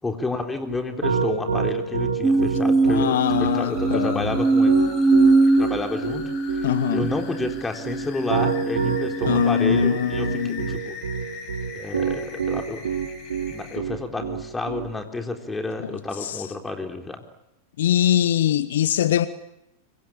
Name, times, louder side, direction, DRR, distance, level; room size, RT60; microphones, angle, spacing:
voice 1, 0.0-4.7 5.4-11.0 11.7-12.9 13.5-17.2, left 3 dB, 10° left, 3.9 m, -30 dB
Piano, 0.7-14.9, right 6 dB, 80° right, 3.6 m, -26 dB
sound 1, 2.2-9.7 10.3-10.8, right 3 dB, 15° right, 1.5 m, -22 dB
voice 2, 2.9-4.4 6.6-7.1 9.3-10.7 16.2-16.4 17.8-19.3, left 10 dB, 65° left, 1.1 m, -22 dB
sound 2, 3.2-13.8, left 5 dB, 40° left, 6.2 m, -41 dB
25.5 x 24.0 x 8.7 m
figure-of-eight pair, 95°, 0 cm